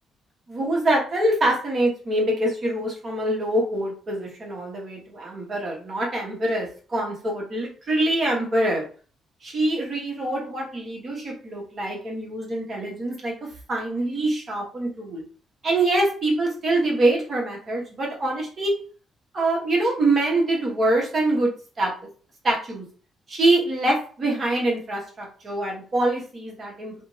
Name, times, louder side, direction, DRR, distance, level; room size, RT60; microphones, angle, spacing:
voice 1, 0.5-8.9 9.4-15.2 15.6-18.7 19.3-21.5 21.8-21.9 22.4-22.8 23.3-27.0, right 2 dB, 35° right, -1 dB, 1.1 m, -24 dB
2.9 x 2.5 x 2.7 m, 0.39 s
cardioid pair, 150°, 0 cm